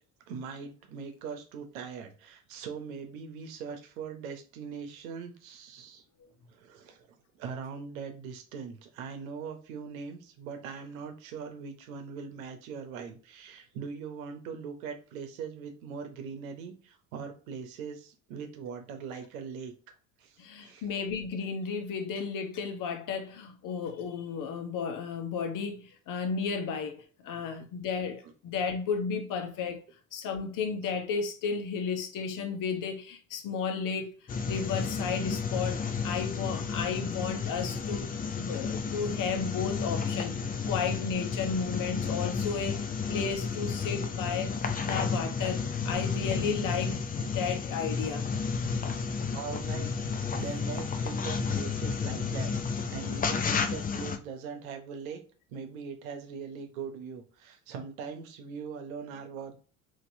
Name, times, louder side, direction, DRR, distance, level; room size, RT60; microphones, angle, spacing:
voice 1, 0.3-6.0 6.5-7.1 7.3-19.7 20.2-20.9 49.3-55.2 55.5-59.6, right 6 dB, 70° right, 1.0 m, -41 dB
voice 2, 20.4-29.8 30.1-40.4 40.7-44.5 44.8-48.3, left 5 dB, 50° left, 1.1 m, -33 dB
sound 1, 34.3-54.2, left 5 dB, 20° left, 0.5 m, -32 dB
4.1 x 2.9 x 2.7 m
hypercardioid pair, 70°, 42 cm